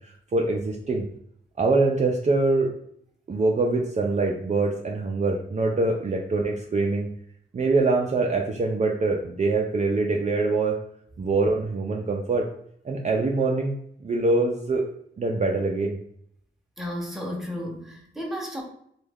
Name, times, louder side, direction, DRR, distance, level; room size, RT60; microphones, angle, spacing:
voice 1, 0.3-1.0 1.6-2.7 3.3-7.1 7.5-10.8 11.2-12.4 12.8-13.8 14.0-14.8 15.2-16.0, right 3 dB, 40° right, 0 dB, 0.4 m, -24 dB
voice 2, 16.8-18.6, equal, ahead, -1 dB, 0.9 m, -33 dB
3.1 x 2.2 x 3.4 m, 0.68 s
wide cardioid pair, 85°, 19 cm